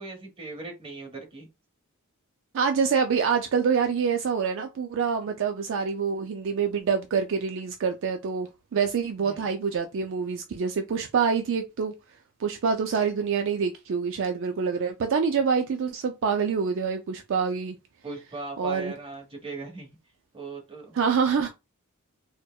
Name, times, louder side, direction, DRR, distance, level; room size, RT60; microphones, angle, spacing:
voice 1, 0.0-1.5 9.2-9.5 18.0-20.0 20.3-20.9, right 3 dB, 25° right, 1.2 m, -39 dB
voice 2, 2.5-11.9 12.4-17.8 18.6-18.9 20.9-21.5, right 6 dB, 60° right, 0.4 m, -26 dB
4.3 x 2.1 x 2.3 m
head